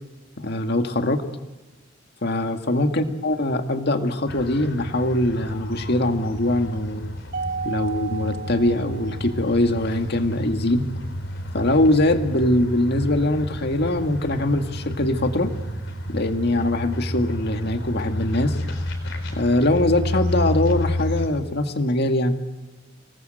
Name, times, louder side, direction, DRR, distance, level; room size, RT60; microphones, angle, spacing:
voice 1, 0.4-1.2 2.2-7.1 7.6-10.9 11.5-15.5 16.1-18.6 19.3-22.4, left 1 dB, 55° left, 6 dB, 1.9 m, -22 dB
sound 1, 4.3-21.3, left 1 dB, 75° left, 4.3 m, -31 dB
Mallet percussion, 7.3-9.8, right 5 dB, 60° right, 0.9 m, -33 dB
26.0 x 19.5 x 7.9 m, 1.2 s
head